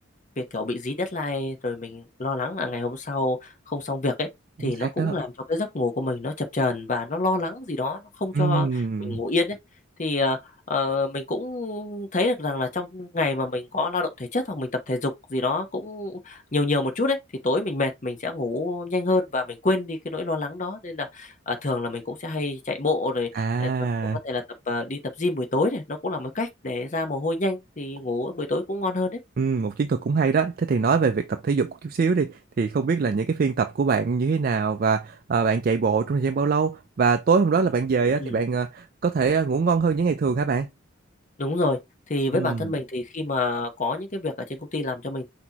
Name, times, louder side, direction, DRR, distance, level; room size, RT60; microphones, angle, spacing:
voice 1, 0.4-4.3 4.6-9.6 10.0-10.4 10.7-17.2 17.4-23.7 24.2-29.2 38.2-38.4 41.4-41.8 42.1-45.2, left 2 dB, 40° left, 0.9 m, -27 dB
voice 2, 4.6-5.2 8.3-9.2 23.3-24.2 29.4-40.7 42.3-42.7, right 5 dB, 45° right, 0.4 m, -23 dB
6.0 x 2.8 x 2.9 m
head